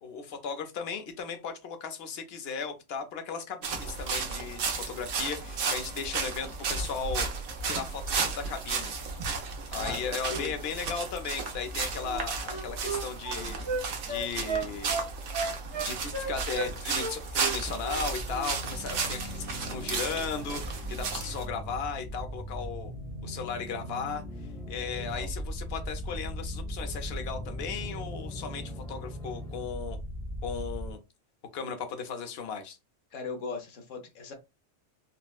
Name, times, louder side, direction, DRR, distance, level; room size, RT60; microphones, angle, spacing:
voice 1, 0.0-7.3 7.6-8.9 9.7-13.6 14.1-14.9 15.7-22.9 23.2-24.2 24.7-30.0 30.4-31.0 31.5-32.8, left 6 dB, 60° left, 7 dB, 0.9 m, -36 dB
sound 1, 3.6-21.4, right 5 dB, 80° right, 1.1 m, -34 dB
voice 2, 9.7-10.5 24.8-25.3 33.1-34.3, left 3 dB, 90° left, 4 dB, 1.2 m, -39 dB
Wind instrument woodwind instrument, 12.0-16.7 17.0-18.0 18.3-18.5, right 4 dB, 25° right, 0.7 m, -34 dB
sound 2, 17.2-30.9, equal, ahead, 0.9 m, -39 dB
4.1 x 2.1 x 2.3 m, 0.25 s
omnidirectional pair, 1.3 m